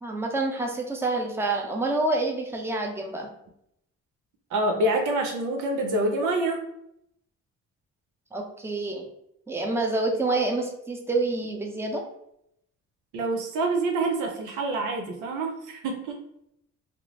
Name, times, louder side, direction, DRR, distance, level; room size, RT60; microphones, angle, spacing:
voice 1, 0.0-3.3 8.3-9.1 9.5-12.0, right 2 dB, 10° right, 2 dB, 0.6 m, -27 dB
voice 2, 4.5-6.6 13.1-16.2, right 2 dB, 85° right, 3 dB, 0.7 m, -26 dB
3.3 x 2.6 x 2.9 m, 0.77 s
cardioid pair, 90°, 30 cm